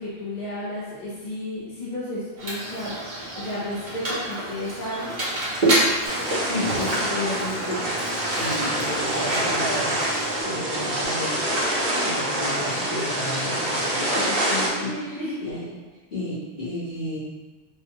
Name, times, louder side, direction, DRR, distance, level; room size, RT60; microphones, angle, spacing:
voice 1, 0.0-5.2 14.4-15.6, left 1 dB, 45° left, -9 dB, 1.0 m, -33 dB
Mechanisms, 2.4-10.4, right 1 dB, 45° right, 1.0 m, -28 dB
sound 1, 6.0-14.7, right 1 dB, 80° right, 1.1 m, -26 dB
voice 2, 6.4-8.0 8.3-11.5 11.7-15.7 16.1-17.2, left 1 dB, 65° left, -12 dB, 2.0 m, -33 dB
4.4 x 2.4 x 3.0 m, 1.2 s
omnidirectional pair, 1.1 m